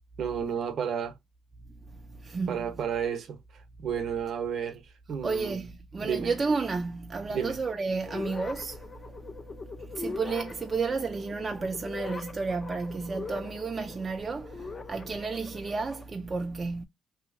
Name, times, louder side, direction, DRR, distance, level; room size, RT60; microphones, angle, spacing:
voice 1, 0.2-1.1 2.5-3.4 3.8-4.8 5.1-5.6 6.0-6.3 7.3-7.6, right 7 dB, 65° right, 0.7 m, -31 dB
voice 2, 2.2-2.8 5.2-8.8 9.1-9.2 9.8-16.8, right 4 dB, 35° right, 0.4 m, -32 dB
sound 1, 8.1-16.0, left 4 dB, 35° left, 0.5 m, -41 dB
2.8 x 2.7 x 2.5 m
cardioid pair, 90°, 0 cm